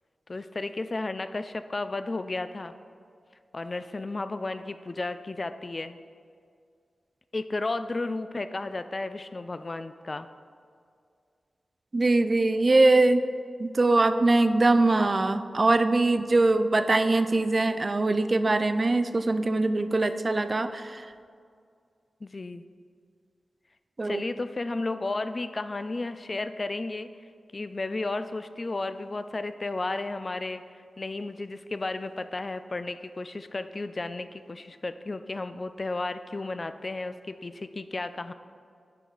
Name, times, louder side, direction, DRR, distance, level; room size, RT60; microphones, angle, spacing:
voice 1, 0.3-2.7 3.5-6.0 7.3-10.3 22.2-22.6 24.0-27.1 27.5-30.6 31.0-38.3, left 2 dB, 45° left, 11 dB, 0.3 m, -33 dB
voice 2, 11.9-13.3 13.6-21.1 24.0-24.2, right 2 dB, 40° right, 11 dB, 0.4 m, -22 dB
9.8 x 4.7 x 4.0 m, 2.2 s
cardioid pair, 55°, 0 cm